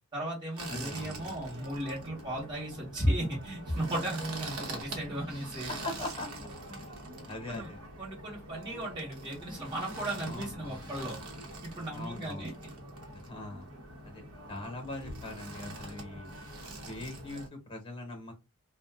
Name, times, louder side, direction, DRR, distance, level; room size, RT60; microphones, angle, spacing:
voice 1, 0.1-5.7 7.5-7.7 8.0-11.1 11.6-12.5, right 1 dB, 20° right, -6 dB, 1.1 m, -35 dB
sound 1, 0.6-17.5, right 2 dB, 75° right, 0.9 m, -44 dB
voice 2, 0.7-1.3 5.7-6.3 6.7-7.8 10.3-11.0 11.9-12.5 13.1-13.7 14.0-14.2 14.5-16.4 16.9-18.3, left 2 dB, 25° left, 4 dB, 1.0 m, -41 dB
2.5 x 2.2 x 3.4 m, 0.24 s
head